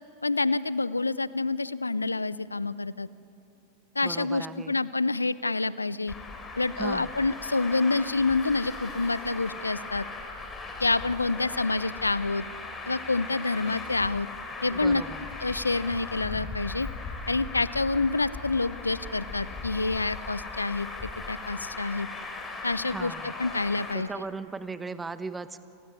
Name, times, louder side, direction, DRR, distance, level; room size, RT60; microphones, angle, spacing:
voice 1, 0.2-3.1 4.0-6.1 6.6-10.1 10.8-12.4 12.9-14.3 14.6-15.0 15.4-16.9 17.3-20.9 21.3-22.1 22.6-24.1, left 3 dB, 80° left, 19 dB, 0.6 m, -27 dB
voice 2, 4.0-4.8 6.8-7.1 14.7-15.2 22.9-23.3 23.9-25.6, right 4 dB, 10° right, 14 dB, 1.0 m, -37 dB
Traffic noise roadway noise, 6.1-23.9, left 3 dB, 20° left, 3.7 m, -39 dB
28.5 x 19.0 x 9.6 m, 2.7 s
figure-of-eight pair, 90°, 0 cm